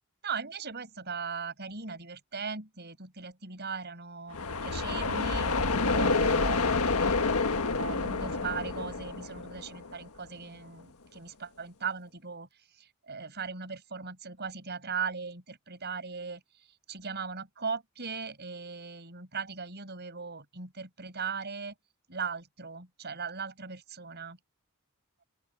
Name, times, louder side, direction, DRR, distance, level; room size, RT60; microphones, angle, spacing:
voice 1, 0.2-5.6 5.9-12.5 12.7-21.7 22.1-24.4, right 5 dB, 50° right, 5.6 m, -38 dB
sound 1, 4.3-10.1, left 3 dB, 80° left, 1.5 m, -28 dB
open air
head